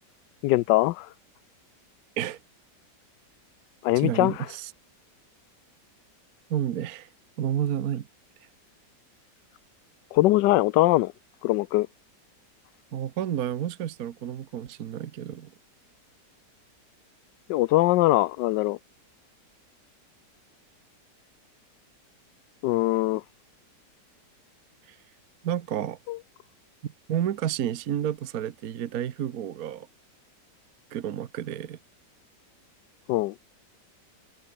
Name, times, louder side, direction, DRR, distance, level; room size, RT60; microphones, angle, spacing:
voice 1, 0.4-1.1 3.8-4.5 10.1-11.1 11.4-11.9 17.5-18.8 22.6-23.2 26.1-26.2 33.1-33.3, left 17 dB, 80° left, 1.2 m, -22 dB
voice 2, 4.0-4.7 6.5-7.1 7.4-8.1 12.9-15.5 24.9-25.0 25.4-26.0 26.8-29.9 30.9-31.8, right 10 dB, 60° right, 1.4 m, -30 dB
omnidirectional pair, 1.9 m